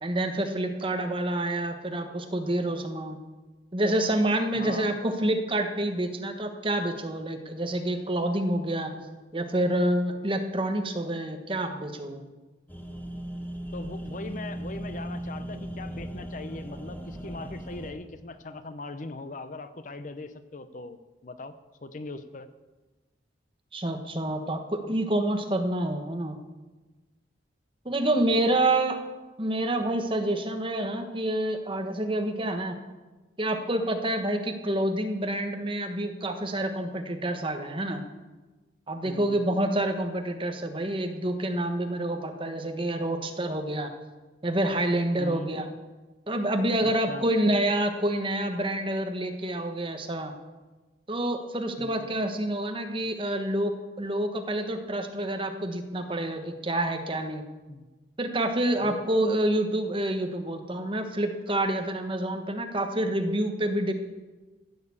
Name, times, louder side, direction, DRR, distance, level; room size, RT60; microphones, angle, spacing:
voice 1, 0.0-3.2 3.7-8.9 9.3-12.2 23.7-26.4 27.8-29.0 29.4-32.8 33.4-38.0 38.9-43.9 44.4-45.7 46.3-50.3 51.1-57.4 58.2-63.9, right 1 dB, 30° right, 5 dB, 1.3 m, -28 dB
voice 2, 4.5-4.9 8.9-9.0 13.7-21.6 21.8-22.5 39.0-39.4 45.2-45.5 46.8-47.2 51.8-52.1 57.7-57.9 58.8-59.0, left 2 dB, 45° left, 11 dB, 0.7 m, -40 dB
sound 1, 12.7-17.9, right 1 dB, 10° left, 1.4 m, -37 dB
15.0 x 6.7 x 8.5 m, 1.2 s
head